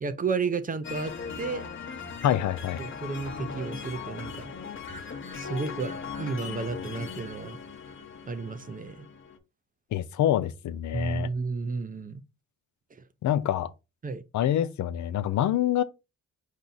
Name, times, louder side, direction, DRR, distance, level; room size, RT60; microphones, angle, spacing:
voice 1, 0.0-1.6 2.8-4.5 5.3-7.6 8.3-9.1 10.9-12.2 14.0-14.2, right 4 dB, 30° right, 0.6 m, -32 dB
sound 1, 0.8-9.4, left 5 dB, 40° left, 0.9 m, -39 dB
voice 2, 2.2-2.8 9.9-11.3 13.2-13.7 14.3-15.8, left 11 dB, 70° left, 0.5 m, -26 dB
4.7 x 2.8 x 3.9 m
cardioid pair, 95°, 30 cm